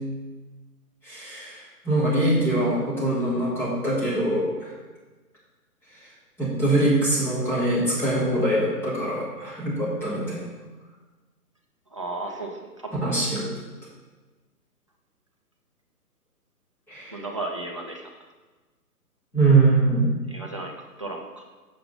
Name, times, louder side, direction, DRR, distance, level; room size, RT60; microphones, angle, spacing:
voice 1, 1.0-4.7 6.4-10.4 13.0-13.4 16.9-17.2 19.3-20.1, right 2 dB, 5° left, -8 dB, 1.5 m, -23 dB
voice 2, 11.9-12.9 17.1-18.1 20.3-21.4, right 2 dB, 20° right, 0 dB, 0.5 m, -34 dB
7.5 x 6.9 x 3.9 m, 1.3 s
hypercardioid pair, 150°, 48 cm